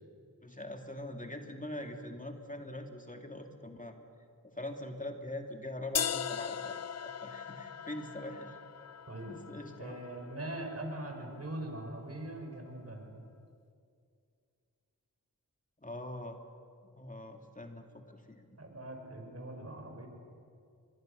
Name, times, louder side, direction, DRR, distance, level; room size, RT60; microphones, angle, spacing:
voice 1, 0.4-4.0 4.4-8.6 9.3-10.0 15.8-16.4 16.9-18.5, left 1 dB, 20° left, 4 dB, 2.6 m, -43 dB
sound 1, 6.0-11.9, left 8 dB, 45° left, 0.6 m, -40 dB
voice 2, 9.8-13.2 18.6-20.1, right 1 dB, 45° right, 3 dB, 5.4 m, -42 dB
25.0 x 22.0 x 6.8 m, 2.4 s
cardioid pair, 45°, 36 cm